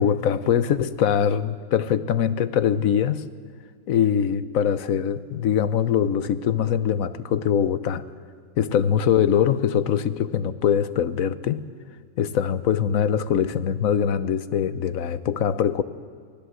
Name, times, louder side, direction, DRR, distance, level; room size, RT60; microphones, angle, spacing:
voice 1, 0.0-3.3 3.9-8.0 8.6-11.7 12.2-15.8, left 8 dB, 85° left, 14 dB, 1.3 m, -22 dB
24.5 x 17.5 x 7.9 m, 2.1 s
omnidirectional pair, 1.4 m